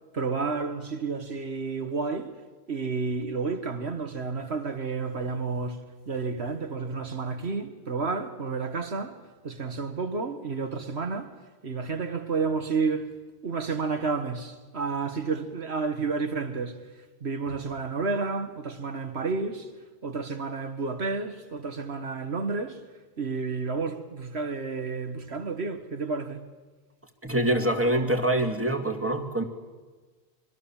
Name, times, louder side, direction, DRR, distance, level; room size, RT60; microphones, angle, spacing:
voice 1, 0.1-2.3 2.7-11.4 11.6-13.1 13.4-16.8 17.2-19.7 20.0-22.8 23.2-26.5, right 4 dB, 85° right, 2.1 m, -31 dB
voice 2, 27.2-29.4, right 1 dB, 10° right, 2.4 m, -25 dB
25.0 x 24.0 x 7.4 m
omnidirectional pair, 1.1 m